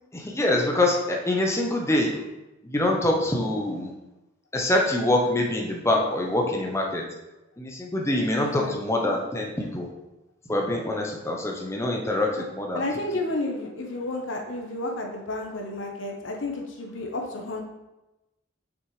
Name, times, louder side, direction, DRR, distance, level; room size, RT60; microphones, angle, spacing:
voice 1, 0.1-2.2 2.6-3.9 4.5-7.0 7.6-9.9 10.5-12.8, left 1 dB, 15° left, 0 dB, 0.8 m, -25 dB
voice 2, 8.3-8.8 12.4-12.5 12.7-17.6, left 2 dB, 70° left, 2 dB, 1.0 m, -31 dB
6.3 x 6.2 x 3.2 m, 1.0 s
head